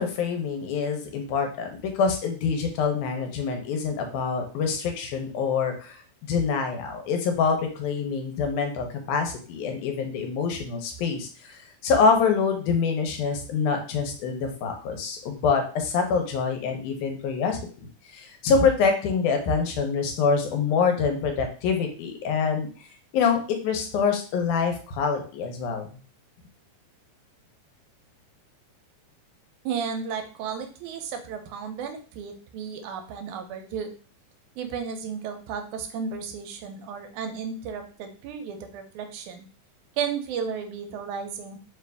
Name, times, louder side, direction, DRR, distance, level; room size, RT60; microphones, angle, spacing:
voice 1, 0.0-17.6 18.1-22.7 23.1-25.9, left 5 dB, 80° left, 4 dB, 2.2 m, -25 dB
voice 2, 29.7-33.9 34.6-39.5 40.0-41.6, right 6 dB, 80° right, 5 dB, 2.0 m, -33 dB
4.8 x 2.5 x 3.4 m, 0.38 s
omnidirectional pair, 3.6 m